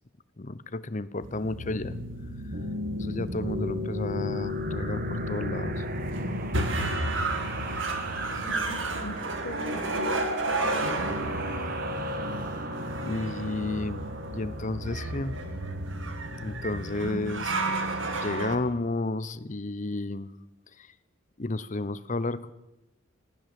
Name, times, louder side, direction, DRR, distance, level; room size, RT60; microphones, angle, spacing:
voice 1, 0.4-2.0 3.0-5.8 13.0-14.0 14.3-15.4 16.4-17.9 18.2-20.3 20.8-20.9 21.4-22.5, left 2 dB, 40° left, 16 dB, 0.8 m, -32 dB
sound 1, 1.2-18.6, right 1 dB, 70° right, 2.5 m, -31 dB
sound 2, 4.3-15.6, right 3 dB, 45° right, 1.9 m, -41 dB
voice 2, 8.1-10.9, left 1 dB, 80° left, 8 dB, 1.6 m, -42 dB
22.5 x 16.0 x 7.7 m, 0.92 s
head